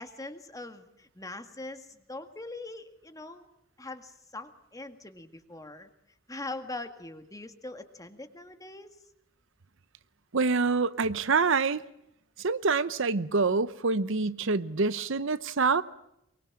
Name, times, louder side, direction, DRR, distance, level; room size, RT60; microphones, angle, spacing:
voice 1, 0.0-3.5 3.8-5.9 6.3-8.9, left 2 dB, 15° left, 1.9 m, -42 dB
voice 2, 10.3-11.8 12.4-15.8, right 4 dB, 65° right, 0.8 m, -26 dB
23.5 x 23.0 x 7.4 m
head